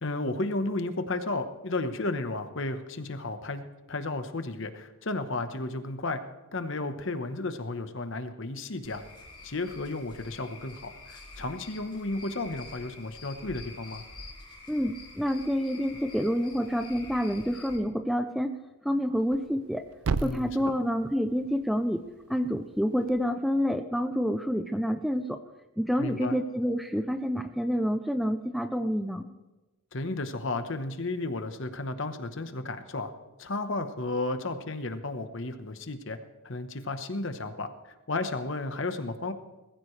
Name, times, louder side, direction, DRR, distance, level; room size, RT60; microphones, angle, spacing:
voice 1, 0.0-6.2 6.5-9.0 9.4-14.0 20.2-20.7 26.0-26.4 29.9-33.1 33.4-36.2 36.4-39.3, left 2 dB, 55° left, 9 dB, 1.1 m, -33 dB
Cricket / Frog, 8.8-17.8, left 3 dB, 20° left, 4.0 m, -47 dB
voice 2, 14.7-18.6 18.8-19.9 20.2-22.0 22.3-25.4 25.8-29.3, equal, ahead, 8 dB, 0.4 m, -28 dB
Thump thud, 19.1-23.2, right 4 dB, 80° right, 0.5 m, -37 dB
20.5 x 15.0 x 3.3 m, 1.1 s
head